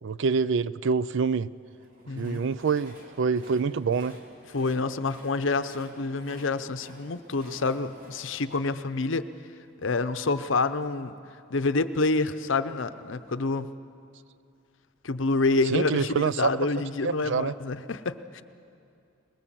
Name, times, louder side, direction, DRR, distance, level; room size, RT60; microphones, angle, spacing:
voice 1, 0.0-1.5 2.2-4.2 15.7-16.5 17.0-17.5, right 5 dB, 60° right, 17 dB, 0.4 m, -26 dB
Train, 1.6-9.8, equal, 45° right, 2.8 m, -51 dB
voice 2, 2.1-2.4 4.5-9.3 9.8-11.1 11.5-13.7 15.0-18.4, left 3 dB, 65° left, 11 dB, 0.8 m, -27 dB
22.5 x 21.0 x 7.6 m, 2.5 s
head